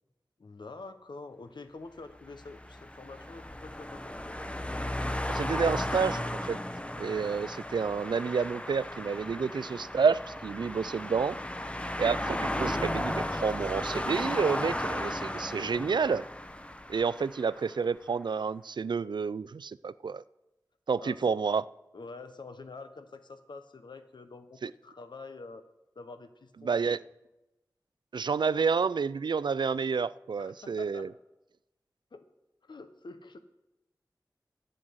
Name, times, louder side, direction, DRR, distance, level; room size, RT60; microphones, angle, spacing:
voice 1, 0.4-4.4 21.0-21.3 21.9-25.6 25.9-27.0 30.4-31.1 32.1-32.2 32.6-33.4, left 3 dB, 85° left, 9 dB, 1.0 m, -47 dB
sound 1, 2.2-17.6, left 1 dB, 15° left, 0.8 m, -35 dB
voice 2, 5.3-6.6 7.0-11.4 12.0-16.3 16.9-20.2 20.9-21.6 24.6-24.7 26.6-27.0 28.1-31.1, right 5 dB, 80° right, 18 dB, 0.4 m, -29 dB
11.0 x 7.7 x 7.9 m, 0.94 s
wide cardioid pair, 45°, 8 cm